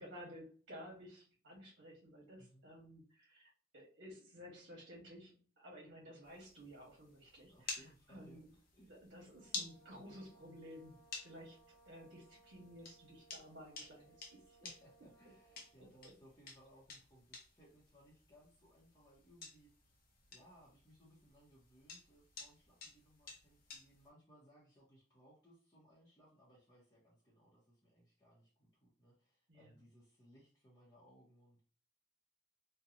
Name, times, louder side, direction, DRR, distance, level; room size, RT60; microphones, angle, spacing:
voice 1, 0.0-8.5 8.9-14.7 29.5-29.8, equal, 75° right, -3 dB, 1.2 m, -55 dB
sound 1, 6.2-24.1, left 4 dB, 50° left, 0.7 m, -53 dB
voice 2, 7.5-8.9 14.6-19.7 20.3-31.6, equal, 20° left, -7 dB, 0.7 m, -65 dB
sound 2, 9.2-15.8, right 3 dB, 75° left, 1.2 m, -67 dB
2.8 x 2.1 x 2.5 m, 0.40 s
head